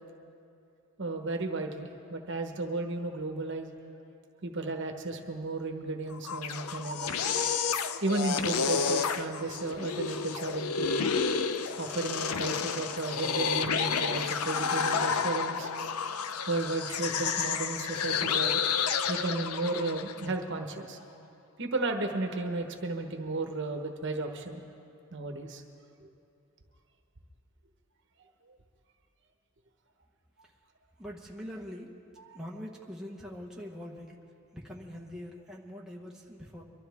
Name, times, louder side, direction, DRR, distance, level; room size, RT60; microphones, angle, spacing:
voice 1, 1.0-3.7 4.4-7.2 8.0-11.1 11.8-15.7 16.5-18.6 19.1-21.0 21.6-24.6 25.1-25.6 32.3-32.4, right 2 dB, 55° right, 4 dB, 1.1 m, -34 dB
sound 1, 6.1-20.3, left 6 dB, 85° left, 0.6 m, -30 dB
voice 2, 31.0-31.9 32.3-34.2 34.5-36.6, equal, 5° right, -3 dB, 1.1 m, -43 dB
24.0 x 12.5 x 3.6 m, 2.7 s
head